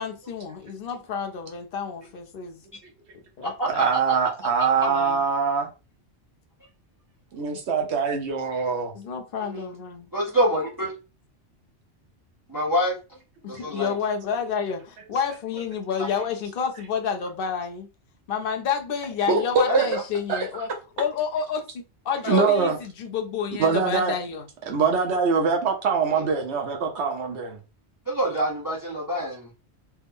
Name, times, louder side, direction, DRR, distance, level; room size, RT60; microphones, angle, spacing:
voice 1, 0.0-2.6 3.4-3.8 4.9-5.3 8.9-10.1 13.4-17.9 18.3-20.7 21.0-24.5, left 6 dB, 55° left, 0.7 m, -29 dB
voice 2, 3.7-5.7 7.3-8.9 19.3-19.9 20.3-20.5 22.3-22.8 23.6-24.1 24.7-27.6, right 5 dB, 70° right, 0.9 m, -23 dB
voice 3, 9.4-9.7 10.1-10.9 12.5-12.9 13.5-13.9 19.7-19.8 22.2-22.5 26.1-26.2 28.1-29.5, equal, 20° right, 0.8 m, -26 dB
3.3 x 2.1 x 3.4 m
omnidirectional pair, 1.2 m